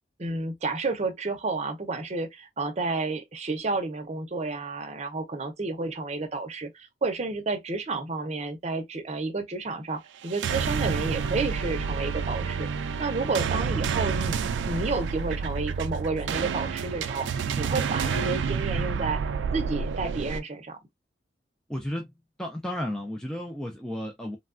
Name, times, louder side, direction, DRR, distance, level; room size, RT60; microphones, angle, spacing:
voice 1, 0.2-12.7 13.0-19.2 19.5-20.8, right 3 dB, 40° right, 0.6 m, -31 dB
sound 1, 10.2-20.4, right 6 dB, 90° right, 0.3 m, -29 dB
voice 2, 21.7-22.1 22.4-24.4, left 1 dB, 5° left, 0.4 m, -33 dB
3.2 x 2.3 x 2.4 m
head